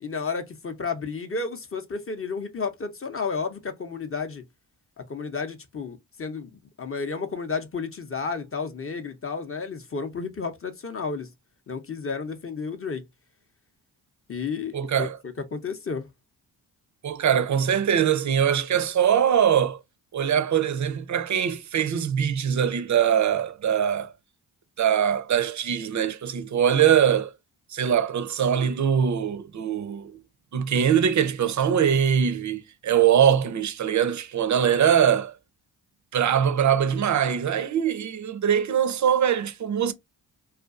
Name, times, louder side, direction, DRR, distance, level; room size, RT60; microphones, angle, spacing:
voice 1, 0.0-4.4 5.1-11.3 11.7-13.0 14.3-16.1, left 5 dB, 30° left, 0.6 m, -32 dB
voice 2, 14.7-15.2 17.0-19.8 20.1-24.1 24.8-27.3 27.7-30.2 30.5-35.3 36.1-39.9, right 8 dB, 40° right, 0.5 m, -22 dB
2.4 x 2.3 x 2.4 m
supercardioid pair, 40°, 47 cm